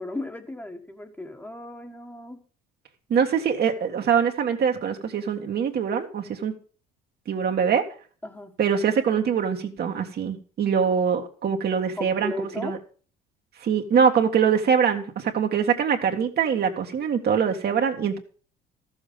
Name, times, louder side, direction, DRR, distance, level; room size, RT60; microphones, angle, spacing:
voice 1, 0.0-2.4 8.2-8.5 12.0-12.8, left 1 dB, 10° left, 5 dB, 1.5 m, -35 dB
voice 2, 3.1-6.5 7.3-7.8 8.6-12.8 13.6-18.2, right 7 dB, 50° right, 4 dB, 1.7 m, -23 dB
13.5 x 7.3 x 5.2 m, 0.42 s
supercardioid pair, 85°, 20 cm